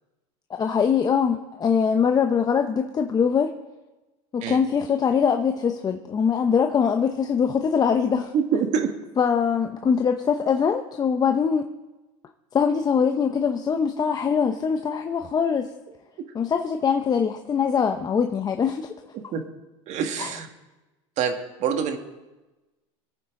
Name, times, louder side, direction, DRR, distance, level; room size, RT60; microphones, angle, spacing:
voice 1, 0.6-3.5 4.3-8.3 9.2-11.7 12.5-15.7 16.3-18.9 20.2-20.3, left 6 dB, 25° left, 5 dB, 0.8 m, -22 dB
voice 2, 8.3-8.9 19.1-19.4 19.9-20.5 21.2-22.0, right 7 dB, 50° right, 6 dB, 1.8 m, -25 dB
25.5 x 8.7 x 3.8 m, 1.1 s
supercardioid pair, 120°, 16 cm